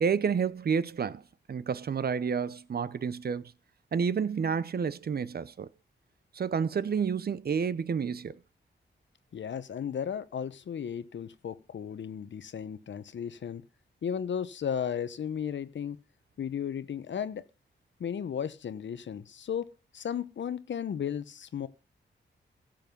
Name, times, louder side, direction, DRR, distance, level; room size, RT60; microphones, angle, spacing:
voice 1, 0.0-1.2 1.5-3.5 3.9-5.7 6.3-8.4, right 6 dB, 55° right, 0.7 m, -29 dB
voice 2, 9.3-13.6 14.0-16.0 16.4-17.4 18.0-21.7, left 8 dB, 70° left, 0.9 m, -35 dB
15.5 x 7.6 x 5.3 m
wide cardioid pair, 105°, 19 cm